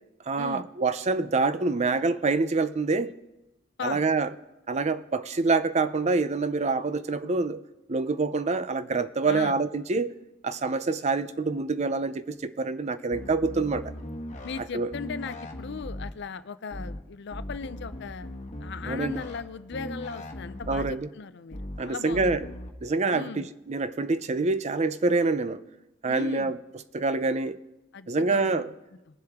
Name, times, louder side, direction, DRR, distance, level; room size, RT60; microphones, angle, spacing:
voice 1, 0.3-3.1 3.8-4.3 4.7-7.6 7.9-10.2 10.4-13.9 14.7-14.9 18.9-19.2 20.7-21.1 21.8-22.4 22.8-25.6 26.0-26.6 26.9-27.6 28.1-28.7, right 3 dB, 35° right, 0.5 m, -26 dB
voice 2, 9.3-9.6 14.4-18.3 18.6-22.5 23.1-23.5 26.1-26.6 27.9-28.6, left 5 dB, 60° left, 0.5 m, -38 dB
sound 1, 13.1-14.6 14.9-16.1 16.7-17.0 17.3-19.4 19.7-20.9 21.5-21.8 22.1-22.7, left 1 dB, 40° left, 1.3 m, -38 dB
21.0 x 7.7 x 3.6 m
head